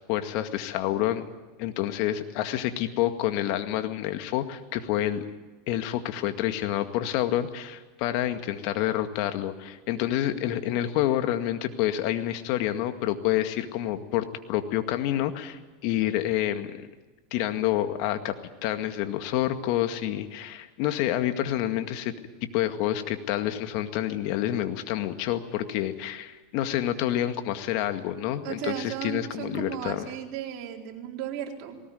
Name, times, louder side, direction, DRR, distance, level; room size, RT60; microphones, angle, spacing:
voice 1, 0.1-1.3 1.6-5.3 5.7-16.9 17.3-18.3 18.6-22.1 22.5-30.1, left 12 dB, 60° left, 8 dB, 2.0 m, -28 dB
voice 2, 28.4-31.8, right 10 dB, 55° right, 1 dB, 4.2 m, -35 dB
19.5 x 18.5 x 9.5 m, 1.2 s
hypercardioid pair, 100°, 0 cm